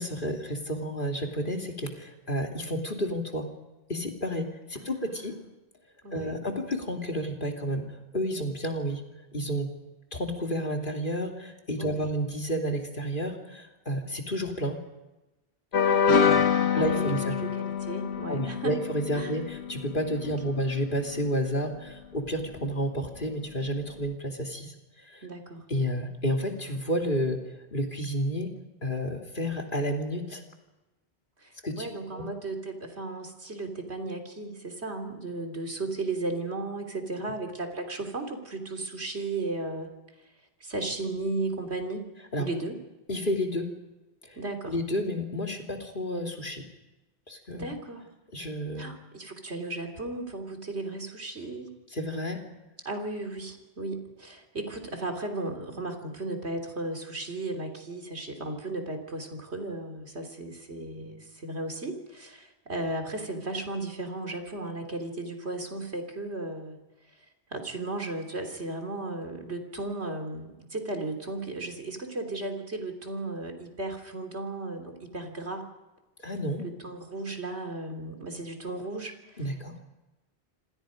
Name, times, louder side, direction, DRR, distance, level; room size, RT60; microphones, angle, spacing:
voice 1, 0.0-3.5 3.9-5.3 6.1-7.9 8.1-9.0 9.3-9.7 10.1-14.8 16.2-16.5 16.7-17.3 18.3-25.3 25.7-28.6 28.8-30.4 31.6-32.2 42.3-42.5 43.1-43.7 44.2-44.4 44.7-46.6 47.3-47.7 48.3-48.9 51.9-52.5 76.2-76.6 79.4-79.8, equal, 50° left, 2 dB, 3.1 m, -31 dB
voice 2, 4.8-5.2 6.0-6.4 11.8-12.1 15.9-18.7 19.1-19.3 20.5-20.6 25.2-25.6 31.4-39.9 40.6-42.1 42.4-42.8 44.4-44.8 47.5-48.1 48.8-51.7 52.9-66.8 67.5-75.7 76.6-79.1, right 2 dB, 85° right, 5 dB, 3.6 m, -35 dB
sound 1, 15.7-20.6, left 7 dB, 80° left, 1.4 m, -26 dB
27.0 x 26.5 x 5.2 m, 1.0 s
omnidirectional pair, 1.1 m